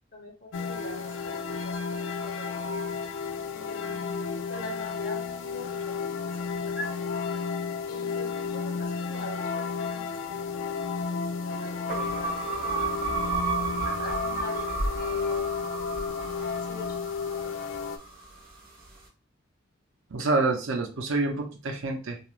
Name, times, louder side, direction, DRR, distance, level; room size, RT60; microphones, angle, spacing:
voice 1, 0.1-2.8 3.5-6.3 6.6-7.0 7.9-10.4 11.0-12.3 12.6-12.9 14.0-15.5 16.7-16.9, left 1 dB, 50° left, 0 dB, 0.9 m, -43 dB
sound 1, 0.5-18.0, left 5 dB, 65° left, 0.3 m, -32 dB
sound 2, 11.9-18.2, right 4 dB, 45° right, 1.1 m, -32 dB
voice 2, 20.1-22.2, right 3 dB, 80° right, 4 dB, 0.6 m, -27 dB
3.1 x 2.4 x 2.4 m, 0.33 s
head